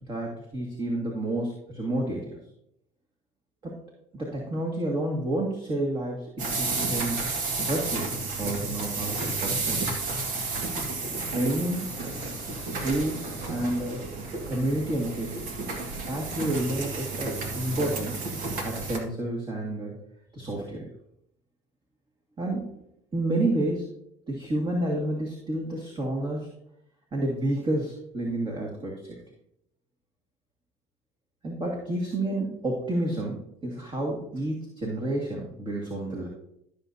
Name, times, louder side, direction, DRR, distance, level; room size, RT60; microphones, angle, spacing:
voice 1, 0.1-2.4 3.6-3.8 4.1-7.2 7.6-8.1 8.4-9.9 11.3-11.9 12.7-14.1 14.5-15.5 16.0-18.2 18.6-20.0 20.3-20.9 22.4-22.7 23.1-23.8 24.3-26.5 27.1-29.2 31.4-36.3, right 1 dB, 35° right, -1 dB, 2.2 m, -30 dB
sound 1, 6.4-19.0, right 3 dB, 70° right, 1.8 m, -32 dB
13.5 x 6.8 x 2.8 m, 0.76 s
supercardioid pair, 80°, 15 cm